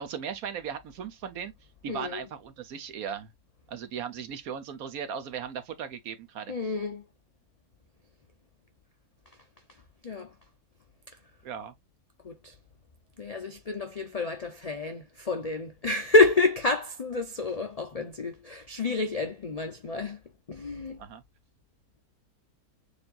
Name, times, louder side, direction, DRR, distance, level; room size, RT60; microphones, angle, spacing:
voice 1, 0.0-1.5 1.8-3.3 3.7-6.5 11.4-11.7 21.0-21.2, right 7 dB, 70° right, 1.3 m, -37 dB
voice 2, 1.9-2.3 6.5-7.0 10.0-10.3 12.2-12.5 13.2-20.2 20.5-21.0, left 3 dB, 85° left, 0.3 m, -28 dB
6.9 x 2.7 x 2.5 m
omnidirectional pair, 1.6 m